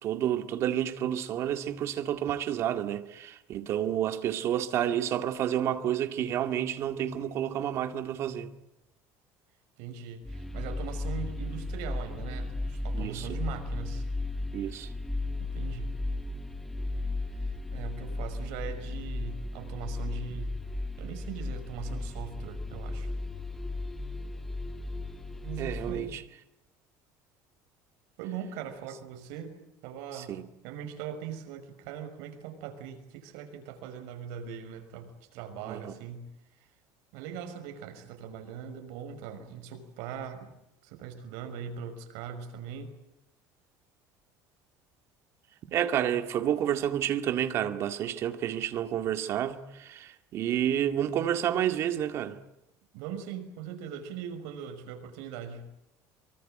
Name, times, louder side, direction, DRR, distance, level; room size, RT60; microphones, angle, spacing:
voice 1, 0.0-8.5 12.9-13.3 14.5-14.9 25.6-26.2 30.1-30.4 35.6-35.9 45.6-52.4, right 10 dB, 40° right, 2.1 m, -30 dB
voice 2, 9.8-14.1 15.4-16.0 17.4-17.5 17.7-20.5 21.0-23.1 25.4-26.1 28.2-29.6 29.8-30.4 30.6-36.3 37.1-40.5 40.8-42.9 52.9-55.7, right 7 dB, 80° right, 5.8 m, -40 dB
sound 1, 10.2-25.9, left 2 dB, 5° left, 2.4 m, -35 dB
25.0 x 24.0 x 9.2 m
cardioid pair, 165°, 7 cm